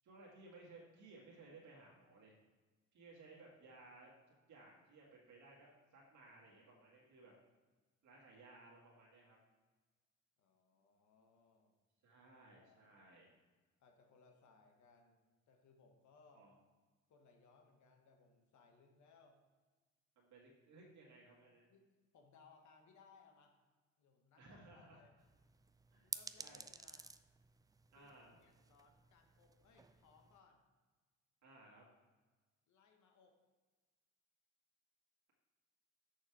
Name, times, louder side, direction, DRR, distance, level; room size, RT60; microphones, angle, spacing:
voice 1, 0.0-2.4 2.9-4.1 4.5-7.3 8.0-9.4 12.0-13.3 16.3-16.6 20.2-21.7 24.4-25.0 25.9-26.6 27.9-28.4 31.4-31.9, right 2 dB, 70° right, -4 dB, 2.0 m, -60 dB
voice 2, 10.4-11.8 12.6-13.0 13.8-16.5 17.1-19.4 21.6-21.9 22.1-23.6 24.0-25.1 26.0-27.1 27.9-30.6 32.7-33.4, left 4 dB, 70° left, 3 dB, 1.4 m, -68 dB
sound 1, 25.2-30.4, right 4 dB, 15° right, 0.3 m, -53 dB
6.5 x 6.4 x 4.8 m, 1.3 s
cardioid pair, 90°, 30 cm